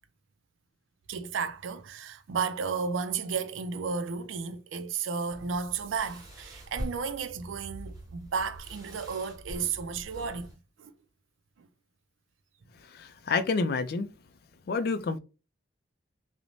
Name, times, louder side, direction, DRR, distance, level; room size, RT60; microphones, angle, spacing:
voice 1, 1.1-10.5 10.8-10.9 11.6-11.7, right 5 dB, 85° right, 0.4 m, -33 dB
sound 1, 5.3-10.5, equal, 20° right, 1.0 m, -44 dB
voice 2, 12.8-14.1 14.7-15.2, left 4 dB, 50° left, 0.3 m, -29 dB
2.5 x 2.0 x 3.0 m
head